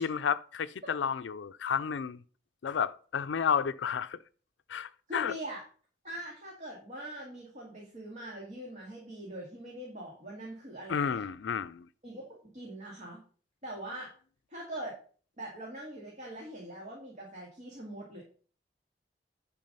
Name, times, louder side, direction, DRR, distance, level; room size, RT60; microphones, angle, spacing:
voice 1, 0.0-2.2 2.6-4.2 4.7-5.3 10.9-11.9, left 7 dB, 85° left, 0.4 m, -31 dB
voice 2, 5.1-5.6 6.0-11.2 12.0-13.2 13.6-14.1 14.5-15.0 15.4-18.2, right 1 dB, 45° right, 2.4 m, -42 dB
10.5 x 4.7 x 5.4 m
head